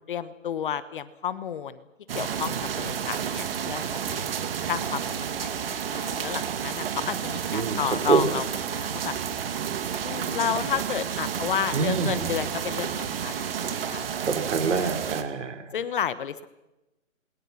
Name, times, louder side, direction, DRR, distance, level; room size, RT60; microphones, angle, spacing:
voice 1, 0.1-1.8 2.1-3.8 4.1-4.3 4.7-5.0 5.4-8.4 8.7-9.1 10.0-14.1 14.7-14.9 15.7-16.5, left 8 dB, 40° left, 15 dB, 1.3 m, -31 dB
sound 1, 2.1-15.2, right 8 dB, 45° right, 2.4 m, -31 dB
voice 2, 11.7-12.3 14.3-15.6, right 5 dB, 65° right, 7 dB, 3.7 m, -25 dB
27.0 x 22.5 x 5.9 m, 0.98 s
hypercardioid pair, 150°, 40 cm